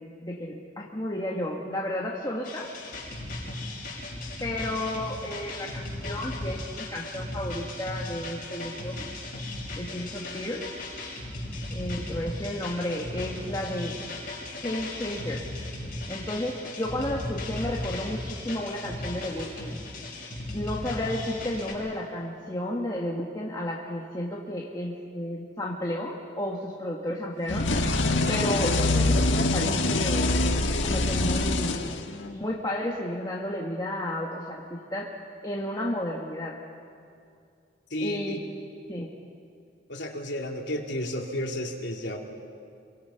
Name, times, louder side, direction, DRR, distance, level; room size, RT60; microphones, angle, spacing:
voice 1, 0.0-2.7 4.4-9.1 9.8-10.7 11.7-14.0 14.6-15.5 16.1-19.8 20.5-27.7 28.3-30.4 30.8-31.8 32.3-35.1 35.4-36.6 38.0-38.4 38.9-39.1, left 1 dB, 20° left, -3 dB, 1.7 m, -32 dB
sound 1, 2.4-21.7, left 1 dB, 50° left, 6.7 m, -36 dB
sound 2, 27.5-32.4, left 2 dB, 90° left, 1.5 m, -24 dB
voice 2, 37.9-38.4 39.9-42.2, left 1 dB, 70° left, 0 dB, 2.9 m, -32 dB
27.5 x 24.0 x 5.8 m, 2.4 s
head